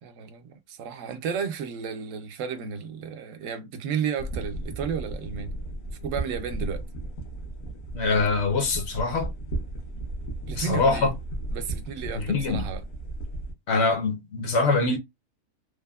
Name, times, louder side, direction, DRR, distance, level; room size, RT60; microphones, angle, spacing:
voice 1, 0.0-5.5 6.0-6.8 10.5-11.1 11.5-12.8, right 7 dB, 75° right, 0.9 m, -33 dB
sound 1, 4.2-13.5, right 2 dB, 90° left, 1.3 m, -35 dB
voice 2, 7.9-9.3 10.6-11.1 12.1-12.7 13.7-15.0, left 3 dB, 65° left, 0.8 m, -24 dB
3.3 x 2.0 x 2.2 m
omnidirectional pair, 1.4 m